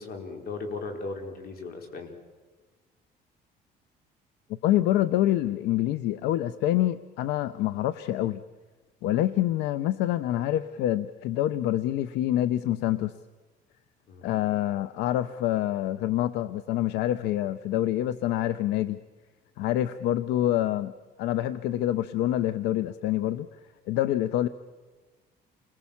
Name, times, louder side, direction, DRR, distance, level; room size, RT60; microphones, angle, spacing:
voice 1, 0.0-2.1 14.1-14.2, left 3 dB, 65° left, 4 dB, 4.4 m, -37 dB
voice 2, 4.6-8.4 9.0-13.1 14.2-19.0 19.6-20.9 21.2-23.5 23.9-24.5, left 13 dB, 90° left, 15 dB, 0.7 m, -26 dB
28.5 x 21.0 x 7.2 m, 1.3 s
cardioid pair, 110°, 17 cm